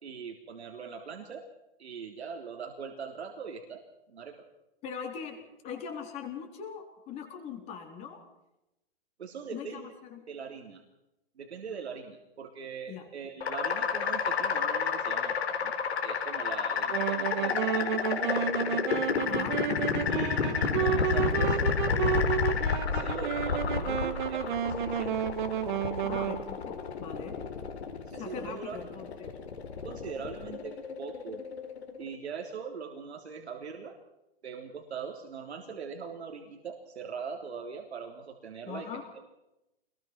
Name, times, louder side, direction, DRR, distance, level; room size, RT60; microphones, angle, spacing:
voice 1, 0.0-1.5 1.8-3.8 4.1-4.4 9.2-9.9 10.3-10.8 11.4-15.7 16.0-18.4 20.1-22.3 22.9-25.2 28.1-28.8 29.8-31.4 32.0-34.0 34.4-39.0, right 6 dB, 85° right, 3 dB, 3.7 m, -41 dB
voice 2, 4.8-8.2 9.5-10.2 12.9-13.1 19.3-19.7 26.0-27.4 28.1-29.3 38.7-39.0, left 7 dB, 20° left, 3 dB, 4.2 m, -41 dB
sound 1, 13.4-32.2, left 6 dB, 85° left, 4.6 m, -31 dB
Wind instrument woodwind instrument, 16.9-26.4, right 9 dB, 50° right, 2.1 m, -31 dB
26.0 x 21.5 x 6.1 m, 0.90 s
hypercardioid pair, 165°, 32 cm